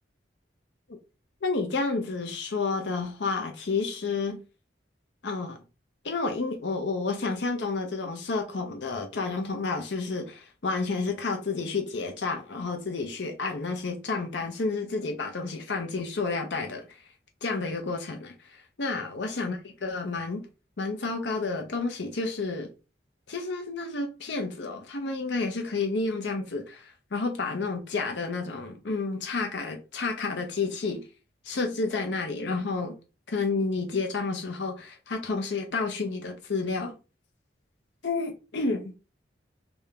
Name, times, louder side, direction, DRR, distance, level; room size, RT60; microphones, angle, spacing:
voice 1, 1.4-4.4 5.2-5.6 6.0-17.0 17.4-20.5 20.8-22.7 23.3-31.1 31.4-33.0 33.3-37.0 38.0-38.9, left 3 dB, 65° left, 0.7 m, -30 dB
3.5 x 2.8 x 3.6 m
head